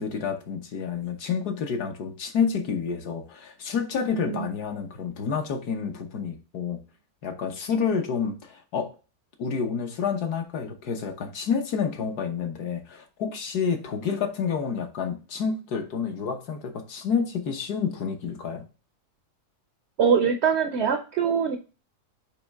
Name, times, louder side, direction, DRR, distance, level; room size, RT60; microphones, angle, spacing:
voice 1, 0.0-6.8 7.2-8.9 9.4-18.7, left 6 dB, 70° left, 4 dB, 1.6 m, -29 dB
voice 2, 20.0-21.6, right 6 dB, 65° right, 7 dB, 0.7 m, -23 dB
8.6 x 3.1 x 3.5 m, 0.33 s
omnidirectional pair, 1.7 m